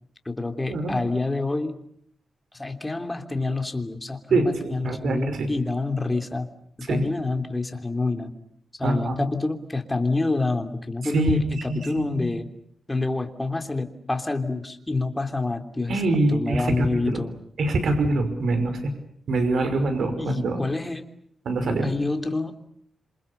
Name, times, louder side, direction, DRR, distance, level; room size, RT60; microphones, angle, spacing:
voice 1, 0.2-1.8 2.5-6.5 6.8-8.3 8.8-12.5 12.9-16.0 16.3-17.3 20.2-21.0 21.8-22.5, left 3 dB, 15° left, 6 dB, 3.1 m, -27 dB
voice 2, 4.3-5.5 6.9-7.0 8.8-9.3 11.0-11.4 11.7-12.3 15.9-17.2 17.6-18.9 19.3-20.6 21.4-21.9, right 2 dB, 75° right, 8 dB, 5.7 m, -24 dB
27.5 x 27.5 x 7.0 m, 0.65 s
wide cardioid pair, 110°, 0 cm